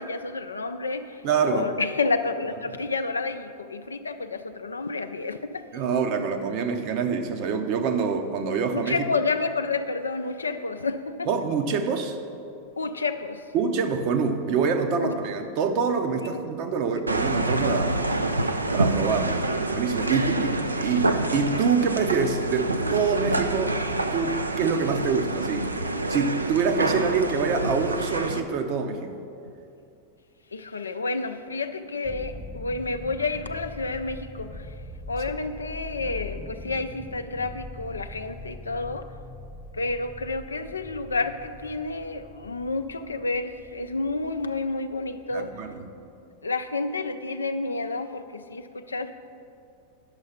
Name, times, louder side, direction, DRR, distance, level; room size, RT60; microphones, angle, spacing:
voice 1, 0.0-5.4 8.7-11.3 12.8-13.5 15.0-15.1 16.3-16.4 20.0-20.1 30.5-34.7 35.1-39.1 39.7-45.6 46.4-49.1, left 3 dB, 75° left, 8 dB, 0.4 m, -30 dB
voice 2, 1.2-1.7 5.7-9.1 11.3-12.2 13.5-18.0 18.7-23.8 24.1-25.7 26.1-29.2 45.3-45.9, right 5 dB, 45° right, 6 dB, 0.8 m, -26 dB
sound 1, 17.1-28.4, right 2 dB, 80° right, 0.5 m, -27 dB
sound 2, 32.0-46.0, left 2 dB, 5° left, 0.6 m, -42 dB
9.6 x 6.4 x 5.7 m, 2.6 s
figure-of-eight pair, 90°, 0 cm